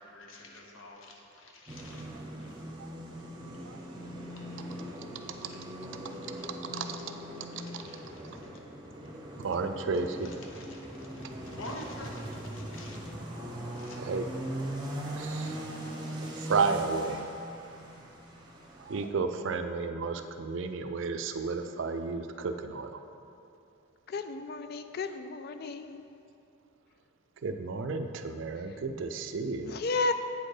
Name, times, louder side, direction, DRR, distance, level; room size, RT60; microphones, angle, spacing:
voice 1, 0.0-2.1 2.4-2.6 3.2-3.3 5.2-5.7 6.8-7.0 7.6-8.5 10.2-13.1 13.7-14.1, left 1 dB, 65° left, 0 dB, 0.8 m, -48 dB
sound 1, 1.7-19.1, right 1 dB, 20° right, 0.8 m, -40 dB
voice 2, 6.4-7.0 7.7-7.8 9.4-10.3 14.0-14.2 15.1-15.6 16.4-17.2 18.8-23.0 27.4-29.8, right 4 dB, 60° right, 7 dB, 0.4 m, -32 dB
voice 3, 24.1-26.1 29.6-30.1, left 3 dB, 45° left, 9 dB, 0.3 m, -33 dB
8.2 x 4.3 x 4.9 m, 2.7 s
head